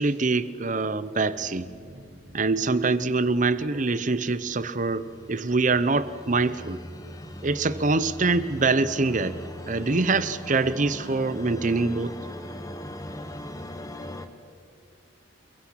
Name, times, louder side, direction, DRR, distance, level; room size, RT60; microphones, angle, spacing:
voice 1, 0.0-1.7 2.3-6.8 7.4-9.4 9.7-12.1, right 3 dB, 45° right, 14 dB, 0.8 m, -24 dB
sound 1, 1.3-6.6, right 1 dB, 75° right, 4.2 m, -51 dB
sound 2, 4.7-14.3, left 1 dB, 20° left, 1.3 m, -40 dB
29.0 x 22.0 x 5.9 m, 2.3 s
head